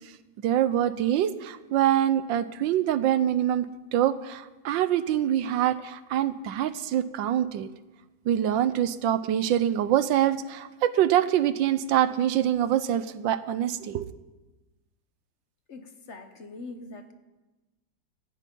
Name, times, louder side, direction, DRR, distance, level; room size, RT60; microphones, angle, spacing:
voice 1, 0.4-3.6 3.9-7.7 8.3-14.1, right 11 dB, 80° right, 14 dB, 1.4 m, -25 dB
voice 2, 15.7-17.1, left 3 dB, 40° left, 7 dB, 1.3 m, -42 dB
17.5 x 14.0 x 5.4 m, 1.1 s
omnidirectional pair, 2.1 m